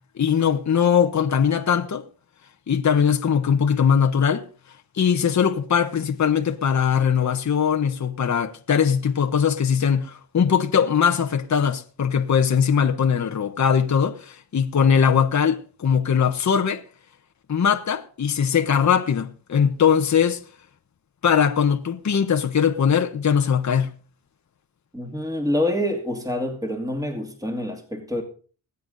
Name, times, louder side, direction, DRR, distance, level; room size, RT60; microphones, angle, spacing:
voice 1, 0.2-2.0 2.7-4.4 4.9-16.8 17.5-20.4 21.2-23.9, left 7 dB, 40° left, 1.2 m, -20 dB
voice 2, 24.9-28.2, left 1 dB, 10° right, 2.6 m, -26 dB
21.0 x 8.3 x 4.0 m
cardioid pair, 75°, 45 cm